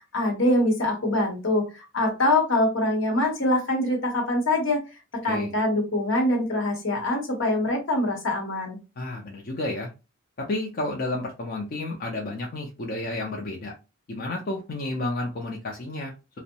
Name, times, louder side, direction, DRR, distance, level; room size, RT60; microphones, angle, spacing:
voice 1, 0.1-4.8 5.2-8.8, left 1 dB, 70° left, 2 dB, 0.9 m, -24 dB
voice 2, 9.0-9.9 10.4-13.7 14.1-16.1, left 2 dB, 45° left, -1 dB, 0.4 m, -31 dB
2.6 x 2.0 x 2.7 m, 0.28 s
head